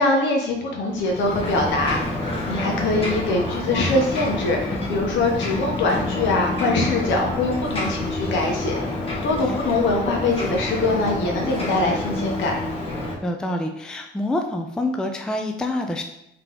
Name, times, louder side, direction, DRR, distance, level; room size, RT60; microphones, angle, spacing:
voice 1, 0.0-8.7 9.2-12.5, left 2 dB, 70° left, 1 dB, 0.9 m, -23 dB
Ocean, 0.9-13.1, left 2 dB, 30° left, 1.1 m, -28 dB
voice 2, 13.2-16.0, left 1 dB, 5° left, 4 dB, 0.3 m, -27 dB
3.9 x 2.9 x 3.7 m, 0.80 s
cardioid pair, 125°, 20 cm